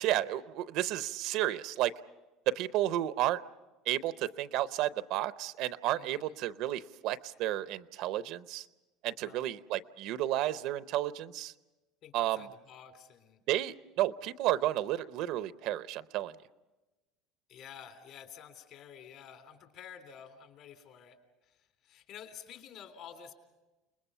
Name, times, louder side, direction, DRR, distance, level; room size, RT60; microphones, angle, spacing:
voice 1, 0.0-1.9 2.5-3.4 3.9-8.7 9.0-11.5 12.1-12.5 13.5-16.3, right 13 dB, 65° right, 14 dB, 0.7 m, -32 dB
voice 2, 6.0-6.3 9.2-9.5 12.0-13.4 17.5-21.2 21.4-23.3, left 8 dB, 55° left, 6 dB, 3.4 m, -50 dB
29.5 x 20.5 x 5.6 m, 1.1 s
supercardioid pair, 125°, 0 cm